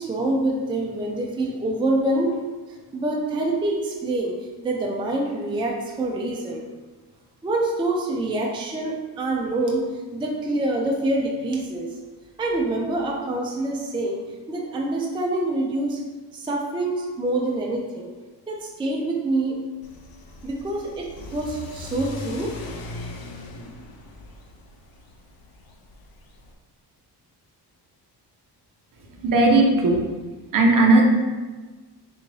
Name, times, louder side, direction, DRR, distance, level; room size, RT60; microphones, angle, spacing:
voice 1, 0.0-2.4 2.9-4.3 4.6-6.6 7.4-11.9 12.4-14.2 14.5-16.0 16.3-18.1 18.5-19.6 20.4-22.5, right 2 dB, 15° right, -2 dB, 0.4 m, -26 dB
Car / Accelerating revving vroom, 19.8-26.5, left 2 dB, 60° left, 0.6 m, -39 dB
voice 2, 29.2-30.0 30.5-31.0, right 2 dB, 50° right, 1 dB, 0.6 m, -16 dB
3.5 x 2.6 x 3.2 m, 1.3 s
cardioid pair, 115°, 41 cm